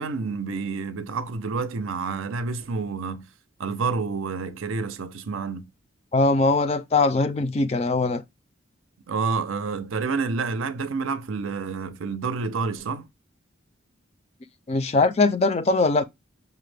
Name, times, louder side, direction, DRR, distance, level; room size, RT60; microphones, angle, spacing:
voice 1, 0.0-3.3 3.6-5.7 9.1-13.1, right 4 dB, 90° right, 0.5 m, -29 dB
voice 2, 6.1-8.2 14.7-16.0, left 3 dB, 30° left, 0.3 m, -21 dB
5.6 x 2.1 x 3.2 m
head